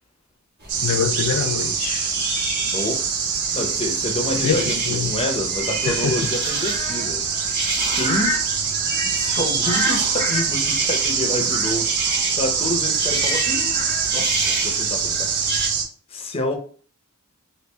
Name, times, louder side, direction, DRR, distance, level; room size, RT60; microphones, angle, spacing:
sound 1, 0.6-15.7, right 2 dB, 45° right, 1.4 m, -31 dB
sound 2, 0.7-15.8, right 6 dB, 80° right, 0.6 m, -24 dB
voice 1, 0.8-2.1 4.3-5.1 5.9-6.1, left 7 dB, 90° left, 0.4 m, -25 dB
voice 2, 2.7-3.1 3.5-7.2 7.9-8.4 8.9-11.9 12.4-15.4 16.1-16.6, left 1 dB, 25° left, 0.6 m, -28 dB
sound 3, 5.2-14.7, equal, 25° right, 0.7 m, -33 dB
3.1 x 2.4 x 3.4 m
head